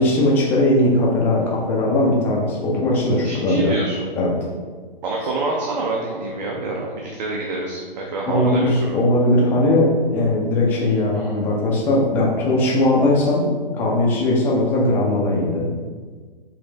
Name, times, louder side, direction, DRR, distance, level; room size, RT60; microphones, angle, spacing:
voice 1, 0.0-3.7 4.2-4.3 8.3-13.5 13.8-15.7, left 1 dB, 5° left, -3 dB, 0.4 m, -19 dB
voice 2, 3.2-4.1 5.0-9.0, right 2 dB, 45° right, -1 dB, 0.7 m, -26 dB
5.1 x 3.1 x 3.3 m, 1.5 s
figure-of-eight pair, 125°, 29 cm